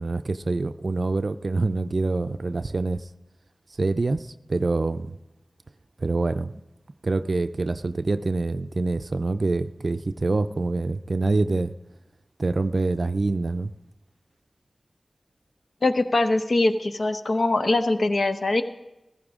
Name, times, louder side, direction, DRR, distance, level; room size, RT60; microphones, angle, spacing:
voice 1, 0.0-3.0 3.8-5.2 6.0-6.6 7.0-11.7 12.4-13.7, right 3 dB, 60° right, 11 dB, 0.4 m, -25 dB
voice 2, 15.8-18.6, left 2 dB, 70° left, 9 dB, 0.8 m, -22 dB
14.5 x 14.0 x 3.6 m, 0.97 s
cardioid pair, 45°, 0 cm